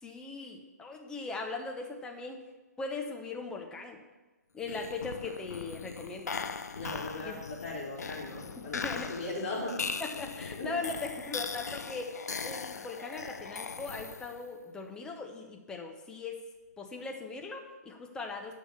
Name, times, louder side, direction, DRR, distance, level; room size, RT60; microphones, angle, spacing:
voice 1, 0.0-2.4 2.8-4.0 4.5-6.4 7.2-7.4 8.6-9.1 10.0-12.1 12.4-16.4 16.8-18.6, left 3 dB, 10° left, 2 dB, 1.0 m, -39 dB
sound 1, 4.6-14.5, left 5 dB, 65° left, 0.6 m, -39 dB
voice 2, 6.7-9.8 10.6-10.8, left 2 dB, 40° left, -5 dB, 3.9 m, -38 dB
10.0 x 5.7 x 6.9 m, 1.2 s
figure-of-eight pair, 130°, 10 cm